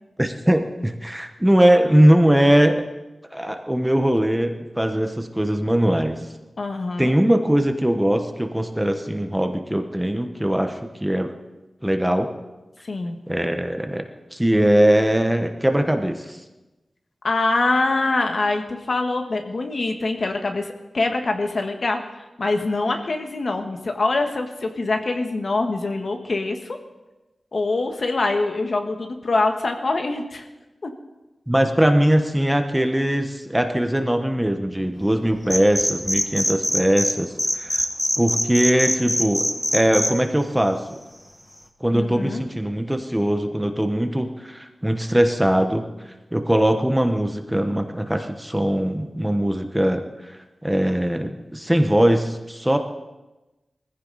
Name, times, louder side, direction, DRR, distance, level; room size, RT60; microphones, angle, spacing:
voice 1, 0.2-2.8 3.3-6.2 7.0-11.3 11.8-12.3 13.3-14.0 14.3-16.4 31.5-37.8 38.2-39.5 39.7-41.0 41.8-45.8 46.3-50.3 50.6-52.8, right 1 dB, 10° right, 6 dB, 1.2 m, -20 dB
voice 2, 6.6-7.1 12.8-13.2 17.2-22.0 22.4-26.8 27.5-30.5 30.8-30.9 41.9-42.4, left 3 dB, 60° left, 4 dB, 1.6 m, -24 dB
sound 1, 35.4-37.1 37.4-40.1, equal, 10° left, 1.4 m, -22 dB
20.0 x 15.0 x 4.1 m, 1.1 s
wide cardioid pair, 95°, 0 cm